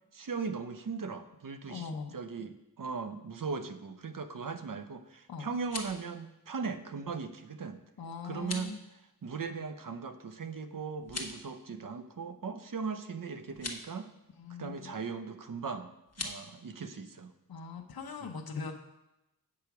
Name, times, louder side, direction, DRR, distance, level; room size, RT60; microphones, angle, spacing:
voice 1, 0.1-7.8 8.2-8.8 9.2-14.1 14.6-15.9 16.2-17.3 18.2-18.3, right 5 dB, 60° right, 9 dB, 0.7 m, -38 dB
voice 2, 1.7-2.1 5.3-5.5 8.0-8.8 14.4-15.0 17.5-18.7, left 5 dB, 75° left, 2 dB, 0.8 m, -41 dB
sound 1, 5.5-6.1 8.3-8.7 11.0-11.5 13.5-13.8 16.1-16.4, left 3 dB, 45° left, 1.0 m, -40 dB
8.1 x 4.9 x 5.9 m, 0.93 s
wide cardioid pair, 80°, 37 cm